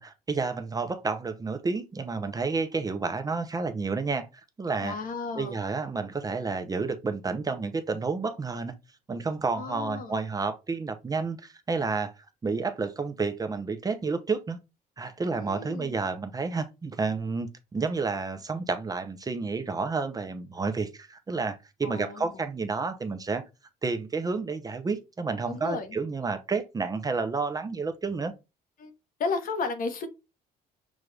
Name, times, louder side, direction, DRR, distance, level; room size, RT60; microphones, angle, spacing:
voice 1, 0.0-4.3 4.6-5.0 5.3-8.7 9.1-12.1 12.4-14.6 15.0-23.4 23.8-28.3, right 4 dB, 20° right, 0.7 m, -30 dB
voice 2, 4.8-5.5 9.5-10.2 15.3-15.9 21.8-22.4 25.5-26.0 28.8-28.9 29.2-30.1, left 4 dB, 55° left, 1.1 m, -33 dB
6.2 x 2.5 x 3.3 m
cardioid pair, 110°, 17 cm